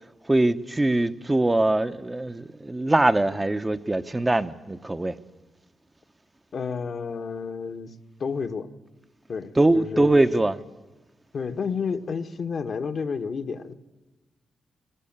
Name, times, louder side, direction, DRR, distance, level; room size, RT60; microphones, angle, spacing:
voice 1, 0.3-5.2 9.6-10.6, right 2 dB, 20° right, 1.0 m, -22 dB
voice 2, 6.5-7.9 8.2-8.7 9.3-10.1 11.3-13.7, left 5 dB, 60° left, 1.4 m, -30 dB
22.0 x 19.0 x 8.8 m
supercardioid pair, 50°, 0 cm